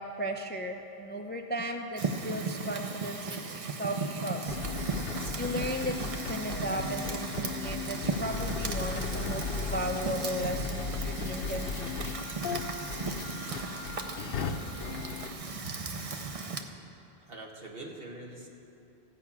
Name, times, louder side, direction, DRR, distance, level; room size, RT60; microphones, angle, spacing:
voice 1, 0.0-4.6 5.4-12.3, equal, 15° left, 4 dB, 0.4 m, -36 dB
Fire, 2.0-16.6, right 4 dB, 40° right, 0.7 m, -36 dB
sound 1, 4.5-15.3, left 5 dB, 65° left, 0.8 m, -36 dB
voice 2, 15.6-16.2 17.2-18.5, right 2 dB, 65° right, 0 dB, 1.6 m, -44 dB
15.5 x 5.7 x 8.4 m, 2.9 s
omnidirectional pair, 1.1 m